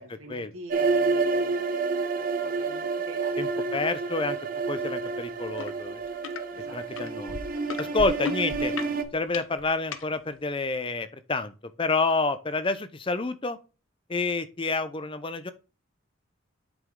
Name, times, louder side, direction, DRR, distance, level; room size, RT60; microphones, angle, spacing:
voice 1, 0.0-1.8 2.1-3.9 6.5-7.1, right 1 dB, 80° right, 1.9 m, -45 dB
sound 1, 0.7-9.0, right 4 dB, 45° right, 0.8 m, -29 dB
voice 2, 3.4-4.4 4.7-6.0 6.7-7.4 7.8-8.7 9.1-11.5 11.8-13.6 14.1-15.5, left 3 dB, 25° left, 0.6 m, -28 dB
sound 2, 5.6-5.7 6.0-6.4 7.0-10.0 10.7-10.8, left 4 dB, 70° left, 0.8 m, -35 dB
7.9 x 5.2 x 3.7 m
head